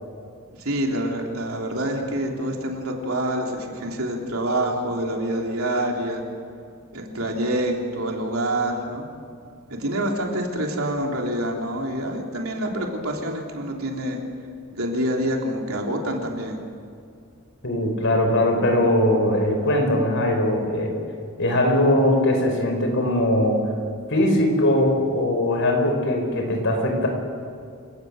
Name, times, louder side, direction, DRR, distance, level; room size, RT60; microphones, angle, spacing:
voice 1, 0.6-6.2 6.9-9.1 9.7-14.2 14.7-16.6, right 1 dB, 90° right, 0 dB, 3.4 m, -26 dB
voice 2, 17.6-21.0 21.4-23.6 24.1-27.1, left 1 dB, 65° left, 3 dB, 5.3 m, -20 dB
29.0 x 18.0 x 6.6 m, 2.3 s
head